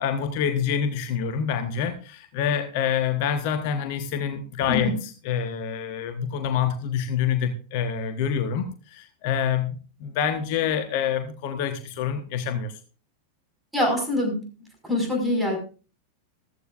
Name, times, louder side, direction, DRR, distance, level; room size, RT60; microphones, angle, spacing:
voice 1, 0.0-12.8, left 8 dB, 45° left, 6 dB, 1.3 m, -27 dB
voice 2, 4.7-5.0 13.7-14.4 14.8-15.6, left 1 dB, 5° right, 2 dB, 5.6 m, -24 dB
15.0 x 14.0 x 2.6 m, 0.36 s
figure-of-eight pair, 90°, 0 cm